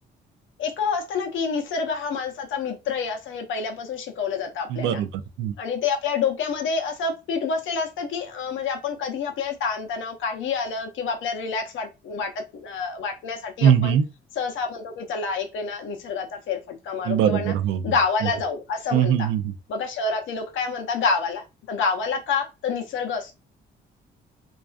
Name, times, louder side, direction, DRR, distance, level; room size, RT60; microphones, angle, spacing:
voice 1, 0.6-5.0 5.6-14.0 14.4-17.5 17.8-19.3 19.7-23.4, left 5 dB, 75° left, 0.6 m, -28 dB
voice 2, 4.7-5.5 13.6-14.0 17.0-18.3 18.9-19.5, right 9 dB, 80° right, 0.4 m, -22 dB
2.4 x 2.3 x 2.3 m
cardioid pair, 90°, 20 cm